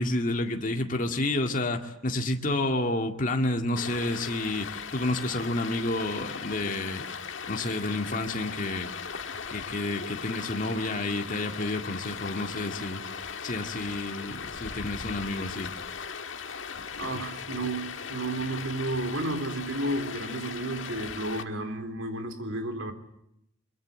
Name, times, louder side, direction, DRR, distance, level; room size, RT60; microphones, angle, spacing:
voice 1, 0.0-7.0 7.5-8.9 9.5-13.0 13.4-15.7, left 2 dB, 40° left, 4 dB, 2.0 m, -30 dB
Stream, 3.8-21.4, left 6 dB, 70° left, 1.7 m, -38 dB
voice 2, 17.0-22.9, right 2 dB, 75° right, 7 dB, 3.8 m, -32 dB
24.5 x 22.5 x 7.6 m, 0.76 s
head